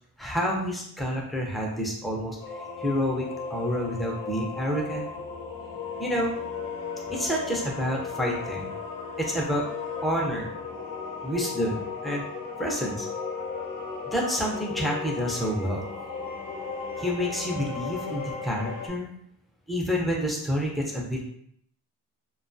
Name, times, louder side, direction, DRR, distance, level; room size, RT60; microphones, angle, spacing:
voice 1, 0.2-2.4 2.8-5.0 6.0-6.3 7.1-8.7 9.2-9.6 10.0-10.5 11.2-12.3 12.6-13.1 14.1-15.8 17.0-19.1 19.7-21.3, equal, ahead, -2 dB, 0.4 m, -28 dB
sound 1, 2.4-18.9, left 5 dB, 55° left, 0.7 m, -36 dB
2.3 x 2.3 x 2.5 m, 0.69 s
wide cardioid pair, 120°, 41 cm